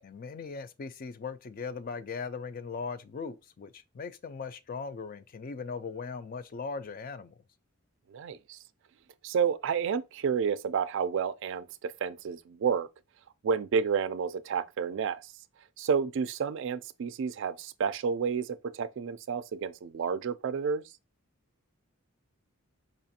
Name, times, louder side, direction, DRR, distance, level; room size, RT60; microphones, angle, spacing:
voice 1, 0.0-7.3, left 5 dB, 40° left, 0.3 m, -39 dB
voice 2, 8.1-8.6 9.2-12.9 13.4-15.3 15.8-20.8, right 6 dB, 55° right, 0.3 m, -30 dB
5.0 x 2.4 x 2.7 m
head